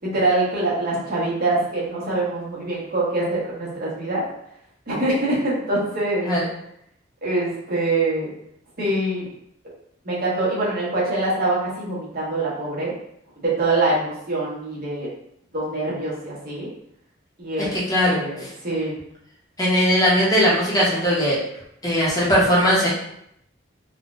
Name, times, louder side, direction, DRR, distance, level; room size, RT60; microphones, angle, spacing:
voice 1, 0.0-4.3 4.9-6.3 7.2-8.3 8.8-9.3 10.0-12.9 13.4-15.1 15.5-16.7 17.4-17.7 18.0-19.0, right 2 dB, 50° right, -7 dB, 1.0 m, -24 dB
voice 2, 17.7-18.5 19.6-21.4 21.8-22.9, equal, 20° left, -7 dB, 0.8 m, -19 dB
3.7 x 2.2 x 2.4 m, 0.75 s
head